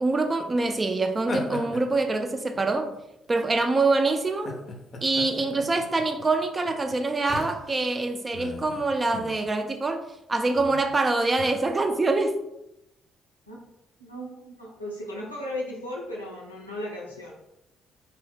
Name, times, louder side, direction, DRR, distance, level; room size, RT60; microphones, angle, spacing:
voice 1, 0.0-2.9 3.3-4.5 5.0-10.0 10.3-12.4, right 3 dB, 30° right, 6 dB, 0.4 m, -25 dB
sound 1, 1.2-3.0 3.6-3.8 4.3-7.9 8.3-9.4 9.7-9.9 10.5-10.9 11.4-12.1, left 3 dB, 45° left, 0.5 m, -38 dB
voice 2, 14.0-17.3, left 1 dB, 90° left, -4 dB, 0.5 m, -36 dB
2.8 x 2.0 x 3.4 m, 0.85 s
figure-of-eight pair, 45°, 0 cm